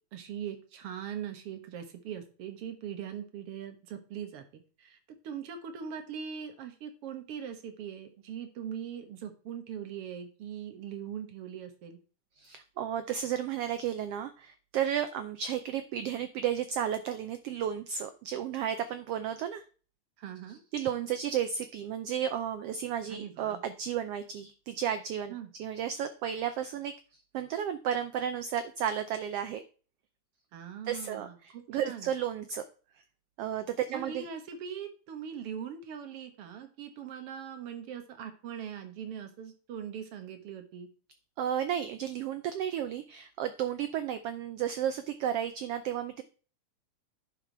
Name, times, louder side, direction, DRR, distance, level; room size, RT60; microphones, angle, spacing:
voice 1, 0.1-12.0 20.2-20.6 23.1-23.6 25.3-25.5 30.5-32.1 33.9-40.9, right 8 dB, 55° right, 6 dB, 2.1 m, -41 dB
voice 2, 12.4-19.6 20.7-25.3 25.6-29.6 30.9-32.6 33.4-34.3 41.4-46.2, right 9 dB, 90° right, 10 dB, 1.3 m, -33 dB
10.5 x 4.7 x 4.6 m, 0.38 s
omnidirectional pair, 3.4 m